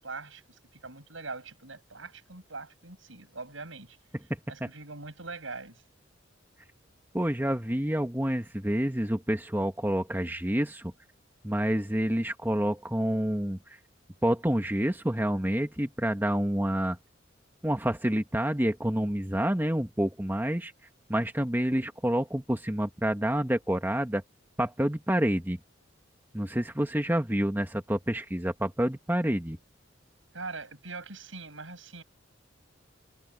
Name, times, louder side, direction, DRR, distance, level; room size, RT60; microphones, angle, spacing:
voice 1, 0.0-4.0 4.5-5.8 30.3-32.0, right 3 dB, 85° right, 7.9 m, -42 dB
voice 2, 7.1-10.9 11.4-13.6 14.2-17.0 17.6-20.7 21.1-24.2 24.6-25.6 26.3-29.6, right 1 dB, 10° right, 1.5 m, -28 dB
head